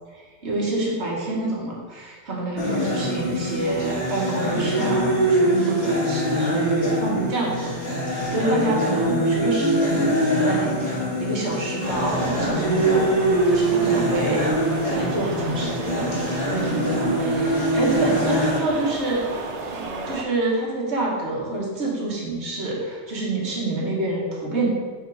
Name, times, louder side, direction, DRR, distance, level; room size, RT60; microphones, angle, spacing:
voice 1, 0.1-7.7 8.0-13.1 13.5-19.2 19.7-24.7, right 2 dB, 75° right, -4 dB, 1.6 m, -27 dB
sound 1, 2.6-18.6, right 1 dB, 40° left, 1.7 m, -23 dB
sound 2, 11.8-20.2, right 2 dB, 50° right, 0.5 m, -33 dB
5.1 x 4.0 x 4.7 m, 1.5 s
omnidirectional pair, 1.2 m